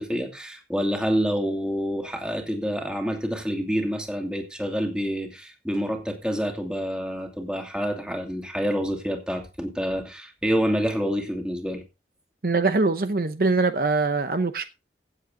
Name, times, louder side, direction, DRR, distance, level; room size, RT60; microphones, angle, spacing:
voice 1, 0.0-11.8, equal, 5° right, 2.5 m, -27 dB
voice 2, 12.4-14.7, right 3 dB, 55° right, 0.8 m, -23 dB
16.5 x 7.8 x 3.8 m
head